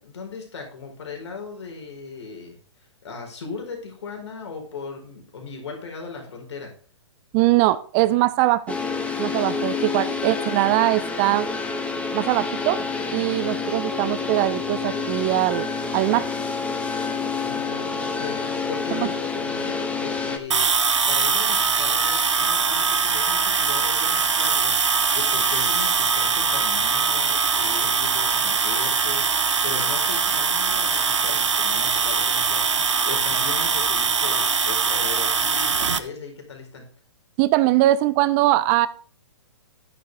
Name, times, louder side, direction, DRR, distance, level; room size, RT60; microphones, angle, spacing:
voice 1, 0.0-6.7 17.3-36.9, left 4 dB, 70° left, 2 dB, 4.9 m, -38 dB
voice 2, 7.3-8.8 9.2-11.5 12.1-12.8 13.1-15.7 15.9-16.3 18.9-19.1 37.4-38.9, right 16 dB, 30° right, 17 dB, 0.5 m, -21 dB
sound 1, 8.7-20.4, left 4 dB, 10° left, 1.4 m, -28 dB
sound 2, 20.5-36.0, right 5 dB, 90° right, 1.1 m, -22 dB
12.5 x 9.3 x 3.5 m, 0.42 s
hypercardioid pair, 130°, 15 cm